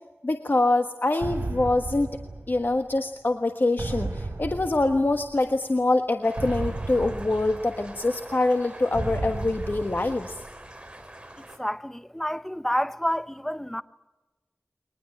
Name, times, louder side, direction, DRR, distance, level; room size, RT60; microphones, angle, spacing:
voice 1, 0.2-2.1 2.5-10.3, left 2 dB, 55° left, 1.4 m, -24 dB
sound 1, 1.2-3.0 3.8-5.5 6.4-8.1 8.9-10.7, right 3 dB, 75° right, 4.9 m, -34 dB
sound 2, 6.2-11.6, right 1 dB, 25° right, 4.8 m, -44 dB
voice 2, 11.6-13.8, equal, 5° left, 0.8 m, -29 dB
22.5 x 20.5 x 9.1 m
wide cardioid pair, 50°, 4 cm